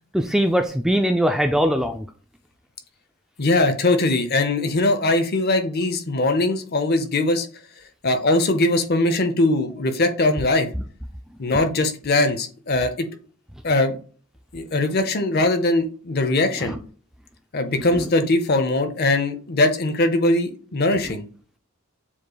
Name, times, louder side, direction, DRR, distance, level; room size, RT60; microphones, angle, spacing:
voice 1, 0.1-2.1 16.6-16.8, equal, ahead, 5 dB, 0.3 m, -21 dB
voice 2, 3.4-7.5 8.0-10.7 11.4-13.1 13.6-14.0 14.5-16.8 17.5-21.2, left 2 dB, 45° left, 8 dB, 0.7 m, -21 dB
7.2 x 3.2 x 2.3 m, 0.40 s
head